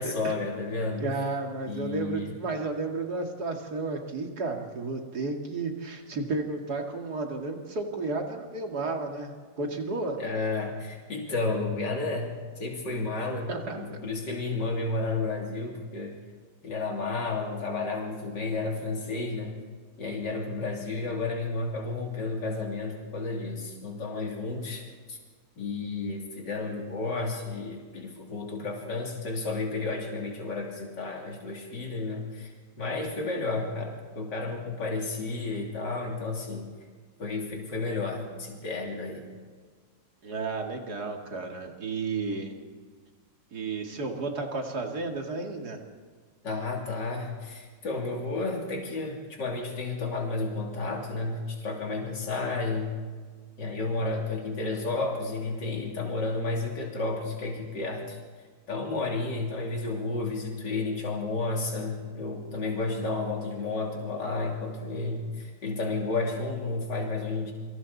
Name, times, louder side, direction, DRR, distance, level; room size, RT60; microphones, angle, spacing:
voice 1, 0.0-1.0 1.7-2.3 10.2-16.2 16.6-19.6 20.0-24.8 25.1-25.2 25.6-36.7 37.2-39.3 46.4-52.9 53.6-58.2 58.7-67.5, left 3 dB, 75° left, -1 dB, 3.6 m, -32 dB
voice 2, 1.0-10.2 13.5-13.8 40.2-42.5 43.5-45.8, right 3 dB, 60° right, 2 dB, 2.8 m, -32 dB
28.5 x 25.0 x 4.2 m, 1.5 s
omnidirectional pair, 1.9 m